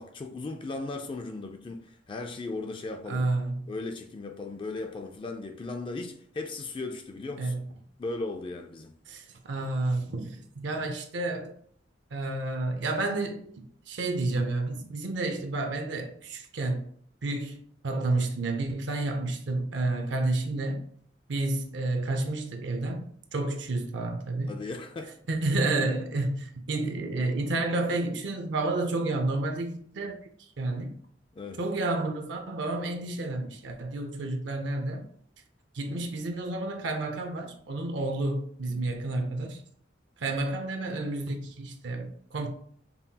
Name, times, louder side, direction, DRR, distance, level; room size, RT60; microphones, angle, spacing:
voice 1, 0.0-3.3 3.7-7.5 8.0-8.9 24.5-25.2 31.3-31.6, left 3 dB, 25° left, 0.3 m, -37 dB
voice 2, 3.1-3.6 7.4-7.6 9.1-11.5 12.1-13.5 13.9-16.8 17.2-20.9 21.3-24.6 25.3-30.2 30.6-30.9 31.6-35.0 35.7-39.6 40.2-42.5, right 2 dB, 70° right, 0.5 m, -30 dB
5.4 x 2.3 x 2.7 m
head